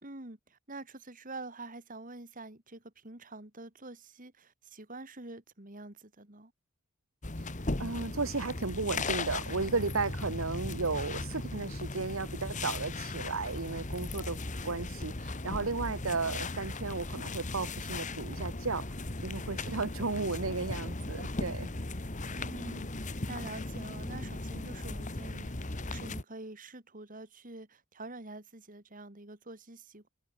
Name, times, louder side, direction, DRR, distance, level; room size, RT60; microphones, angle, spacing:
voice 1, 0.0-6.5 22.3-30.1, right 2 dB, 40° right, 2.9 m, -46 dB
sound 1, 7.2-26.2, left 2 dB, 35° left, 1.5 m, -37 dB
voice 2, 7.8-14.4 14.6-18.9 19.2-21.7, right 4 dB, 70° right, 1.3 m, -34 dB
open air
head